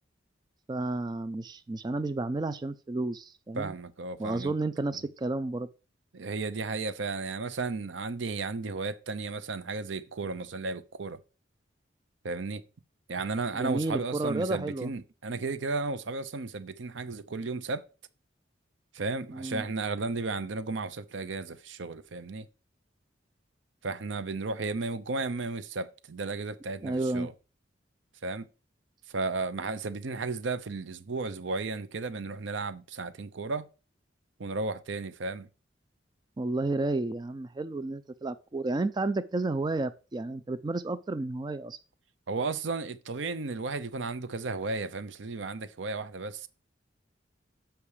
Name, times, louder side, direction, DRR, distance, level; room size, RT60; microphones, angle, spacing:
voice 1, 0.7-3.7 4.2-5.7 13.5-14.9 19.3-19.6 26.8-27.3 36.4-41.8, right 2 dB, 20° right, 0.3 m, -31 dB
voice 2, 3.6-4.6 6.1-11.2 12.2-12.6 13.1-17.8 18.9-22.5 23.8-27.3 28.2-28.5 29.1-33.7 34.4-35.5 42.3-46.5, right 3 dB, 80° right, 0.7 m, -34 dB
7.1 x 5.8 x 4.9 m
head